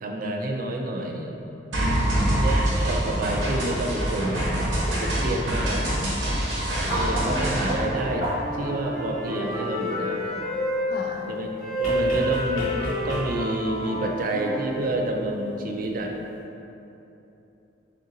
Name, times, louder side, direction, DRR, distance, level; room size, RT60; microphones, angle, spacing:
voice 1, 0.0-1.3 2.4-4.6 4.9-5.9 6.7-8.3 8.5-10.4 11.3-16.1, right 1 dB, 45° right, 1 dB, 0.3 m, -29 dB
sound 1, 1.7-7.7, right 1 dB, 85° right, 0.9 m, -25 dB
voice 2, 1.8-2.5 5.9-6.4 10.9-11.3, left 2 dB, 55° left, 0 dB, 0.4 m, -35 dB
sound 2, 6.9-8.6 11.8-13.6 15.1-15.2, equal, 90° left, 1.2 m, -31 dB
Wind instrument woodwind instrument, 7.0-10.9 11.6-15.1, left 1 dB, ahead, 0.8 m, -30 dB
3.7 x 3.6 x 2.7 m, 2.9 s
head